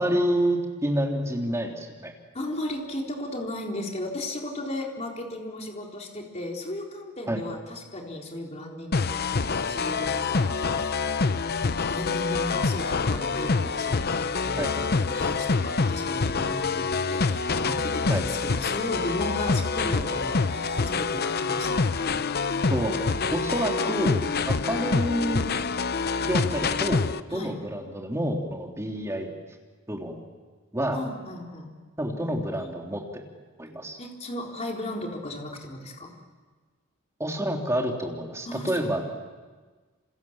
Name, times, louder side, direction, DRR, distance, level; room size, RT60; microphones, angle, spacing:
voice 1, 0.0-2.1 7.3-7.4 14.6-14.7 18.1-18.2 22.7-23.0 23.3-25.5 26.2-27.0 27.3-29.3 29.9-30.2 30.7-31.0 32.0-33.0 33.6-34.0 37.2-39.0, equal, 15° right, 1 dB, 3.3 m, -28 dB
voice 2, 2.3-10.6 11.9-22.2 23.5-23.6 27.3-27.6 30.9-31.7 34.0-36.1 38.5-39.0, left 1 dB, 30° left, 0 dB, 3.9 m, -35 dB
sound 1, 8.9-27.2, left 4 dB, 50° left, 0.8 m, -26 dB
27.5 x 27.0 x 7.4 m, 1.4 s
head